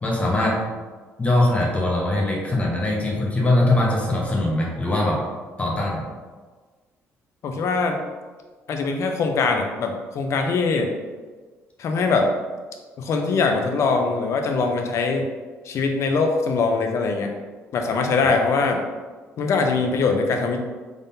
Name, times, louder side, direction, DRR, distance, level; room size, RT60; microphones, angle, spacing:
voice 1, 0.0-0.7 1.2-5.2 5.6-6.0, left 1 dB, 25° left, -2 dB, 0.9 m, -21 dB
voice 2, 7.4-8.0 8.7-10.9 11.8-12.3 13.0-15.3 15.6-17.3 17.7-18.8 19.4-20.6, left 4 dB, 60° left, 3 dB, 0.6 m, -22 dB
3.8 x 3.6 x 2.7 m, 1.4 s
cardioid pair, 95°, 5 cm